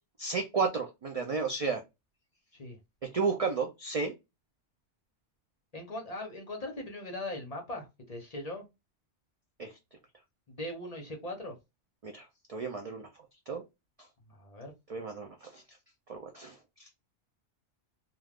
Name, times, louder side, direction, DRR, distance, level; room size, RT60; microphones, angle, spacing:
voice 1, 0.2-1.8 3.1-4.1 9.6-9.7 12.0-13.1 13.5-13.6 14.9-15.6 16.1-16.9, right 4 dB, 70° right, 0.3 m, -33 dB
voice 2, 5.7-8.6 10.5-11.5 14.3-14.7, left 1 dB, 40° left, 0.7 m, -40 dB
2.3 x 2.3 x 3.4 m
omnidirectional pair, 1.2 m